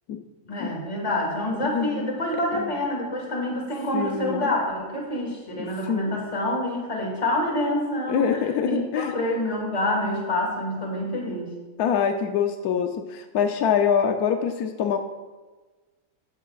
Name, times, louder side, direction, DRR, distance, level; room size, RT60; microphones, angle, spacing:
voice 1, 0.5-8.3 8.6-11.5, left 1 dB, 25° left, -2 dB, 2.1 m, -27 dB
voice 2, 1.7-2.0 2.5-2.7 3.9-4.5 5.6-6.2 8.1-9.2 11.8-15.0, left 7 dB, 80° left, 5 dB, 1.2 m, -25 dB
15.0 x 11.5 x 2.4 m, 1.3 s
omnidirectional pair, 1.6 m